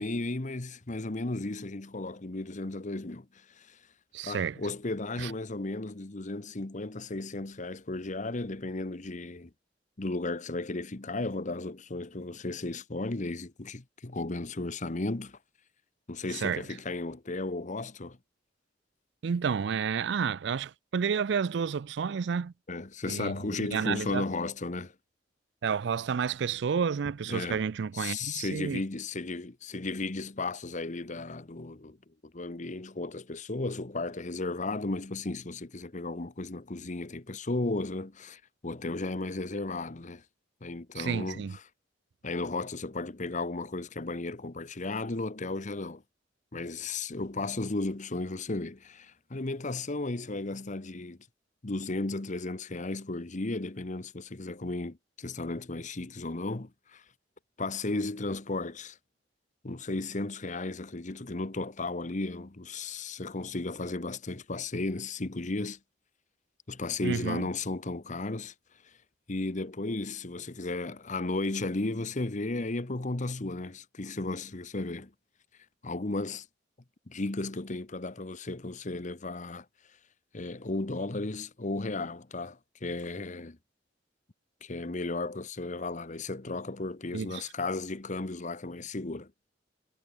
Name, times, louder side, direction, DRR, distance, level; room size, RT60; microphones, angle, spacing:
voice 1, 0.0-3.8 4.2-9.5 10.0-15.4 16.1-18.2 22.7-24.9 27.3-27.6 27.9-32.0 32.2-40.2 40.6-41.4 42.2-46.0 46.5-51.2 51.6-57.0 57.6-59.0 59.6-65.8 66.7-68.5 69.3-75.1 75.8-76.5 77.1-79.7 80.3-83.6 84.6-89.3, left 2 dB, 45° left, 1.1 m, -34 dB
voice 2, 4.1-4.6 5.2-5.3 16.3-16.6 19.2-22.5 23.1-24.2 25.6-28.8 41.0-41.6 67.0-67.4 87.1-87.4, right 6 dB, 70° right, 0.4 m, -30 dB
head